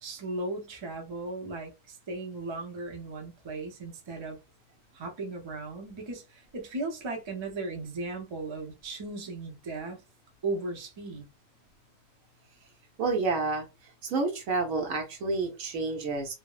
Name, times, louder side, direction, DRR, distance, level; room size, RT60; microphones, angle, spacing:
voice 1, 0.0-4.4 4.9-10.0 10.4-11.3, right 2 dB, 35° right, 0.5 m, -36 dB
voice 2, 13.0-13.7 14.0-16.3, right 3 dB, 85° right, 1.2 m, -29 dB
3.3 x 2.1 x 2.3 m
omnidirectional pair, 1.4 m